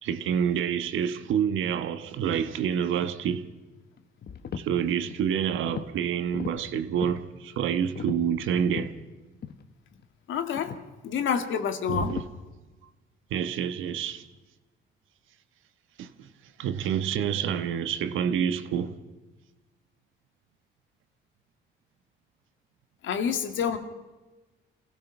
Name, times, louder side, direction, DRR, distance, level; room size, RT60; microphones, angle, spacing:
voice 1, 0.0-3.5 4.5-8.9 11.9-12.2 13.3-14.3 16.0-16.3 16.6-19.0, right 8 dB, 80° right, 1.3 m, -28 dB
sound 1, 1.4-1.7 2.2-3.5 4.0-4.7 5.1-5.9 6.2-7.2 7.8-9.0 9.4-9.6 9.9-10.1 10.5-10.9 11.8-12.3, left 7 dB, 55° left, 1.5 m, -38 dB
voice 2, 10.3-10.8 11.0-12.2 23.0-23.8, left 7 dB, 75° left, 2.2 m, -28 dB
27.0 x 16.5 x 6.0 m
cardioid pair, 90°, 20 cm